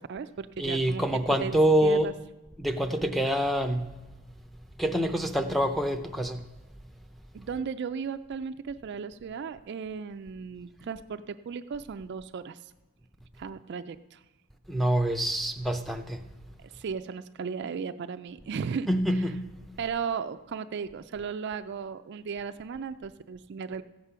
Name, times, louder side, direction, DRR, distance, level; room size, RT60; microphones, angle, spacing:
voice 1, 0.0-1.0 1.4-2.1 7.3-12.7 13.4-14.2 16.7-18.9 19.8-23.8, right 6 dB, 50° right, 10 dB, 0.3 m, -36 dB
voice 2, 0.6-2.1 2.6-3.9 4.8-6.4 14.7-16.3 18.9-19.5, right 1 dB, ahead, 4 dB, 0.5 m, -26 dB
14.0 x 8.2 x 5.6 m, 1.1 s
head